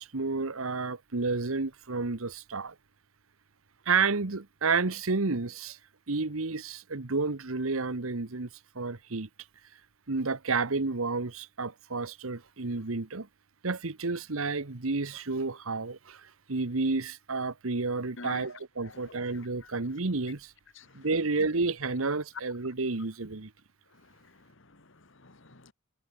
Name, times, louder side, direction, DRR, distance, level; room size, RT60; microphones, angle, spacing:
voice 1, 0.0-2.7 3.9-5.8 6.1-8.5 8.7-9.3 10.1-13.3 13.6-20.5 20.9-23.5, right 3 dB, 75° right, 1.2 m, -31 dB
voice 2, 18.8-19.2 19.6-19.7 20.8-21.1 24.1-25.7, left 4 dB, 60° left, 2.1 m, -49 dB
head